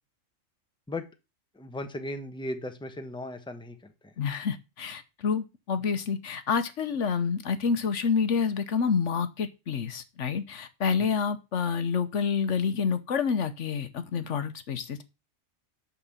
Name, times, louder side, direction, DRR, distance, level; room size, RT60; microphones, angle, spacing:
voice 1, 1.5-4.1, left 1 dB, 5° left, 1.0 m, -37 dB
voice 2, 4.2-15.0, left 6 dB, 65° left, 1.2 m, -28 dB
11.5 x 4.0 x 7.2 m
omnidirectional pair, 1.3 m